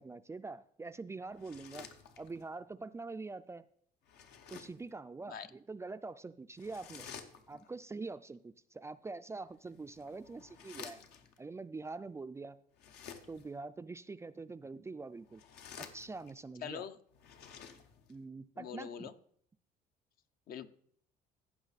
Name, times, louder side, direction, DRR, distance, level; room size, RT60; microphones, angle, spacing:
voice 1, 0.0-1.9 2.2-3.7 4.5-7.1 7.5-11.0 11.4-12.6 13.3-15.4 15.8-16.9 18.1-19.1, right 3 dB, 15° right, 0.3 m, -44 dB
sound 1, 1.3-2.5 4.0-4.9 6.6-7.7 9.5-11.4 12.7-13.6 15.2-16.5 17.1-18.2, left 7 dB, 75° left, 1.0 m, -52 dB
voice 2, 16.6-17.0 18.6-19.1 20.5-20.7, left 8 dB, 60° left, 0.7 m, -43 dB
15.0 x 6.0 x 4.1 m
cardioid pair, 110°, 17 cm